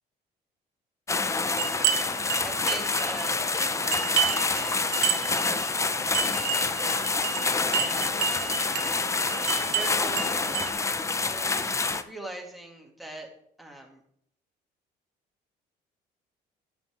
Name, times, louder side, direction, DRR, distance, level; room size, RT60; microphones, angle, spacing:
sound 1, 1.1-12.0, left 4 dB, 15° left, 0.5 m, -27 dB
sound 2, 1.6-10.7, right 9 dB, 85° right, 1.2 m, -31 dB
voice 1, 1.8-5.6 6.0-7.4 7.8-8.2 8.7-13.3 13.6-14.0, right 1 dB, ahead, 0 dB, 2.2 m, -43 dB
11.0 x 7.3 x 3.5 m, 0.70 s
cardioid pair, 110°, 17 cm